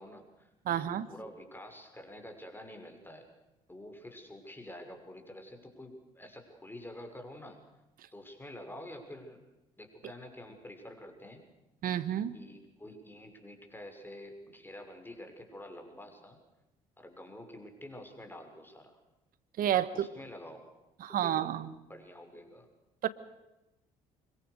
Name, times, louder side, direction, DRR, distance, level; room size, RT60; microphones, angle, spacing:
voice 1, 0.0-3.3 3.7-7.6 8.1-9.4 9.8-11.4 12.3-16.4 17.0-19.0 19.7-19.8 20.1-20.7 21.1-21.5 21.9-22.7, left 1 dB, 15° left, 5 dB, 6.3 m, -48 dB
voice 2, 0.6-1.1 8.0-8.1 11.8-12.4 19.6-20.1 21.0-21.7 23.0-23.1, right 10 dB, 60° right, 14 dB, 1.5 m, -30 dB
25.5 x 22.5 x 6.7 m, 0.96 s
hypercardioid pair, 55°, 16 cm